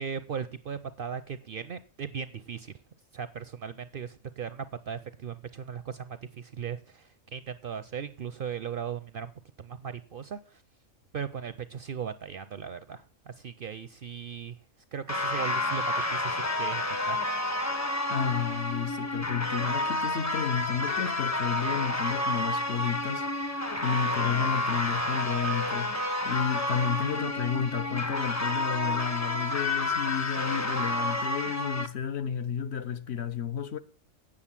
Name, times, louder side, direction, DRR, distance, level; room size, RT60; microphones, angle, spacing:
voice 1, 0.0-2.7 3.1-9.3 9.6-10.6 11.1-14.6 14.9-17.2 23.7-23.8, right 7 dB, 55° right, 0.6 m, -38 dB
sound 1, 15.1-31.9, left 1 dB, 15° left, 0.6 m, -30 dB
voice 2, 18.1-33.8, left 7 dB, 60° left, 0.9 m, -31 dB
8.7 x 6.5 x 7.2 m
omnidirectional pair, 1.3 m